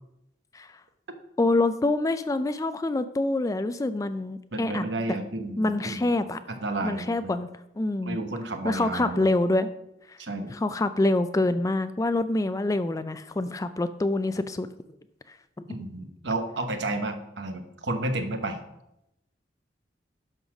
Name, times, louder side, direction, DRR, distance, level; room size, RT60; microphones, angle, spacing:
voice 1, 1.4-4.9 5.6-6.4 6.8-7.5 7.8-8.2 8.6-9.7 10.1-10.2 10.5-14.7, left 2 dB, 20° left, 11 dB, 0.3 m, -26 dB
voice 2, 4.5-6.1 6.6-7.3 8.0-9.3 10.2-10.5 15.7-18.6, right 2 dB, 70° right, 6 dB, 1.1 m, -31 dB
11.0 x 4.0 x 6.0 m, 0.85 s
head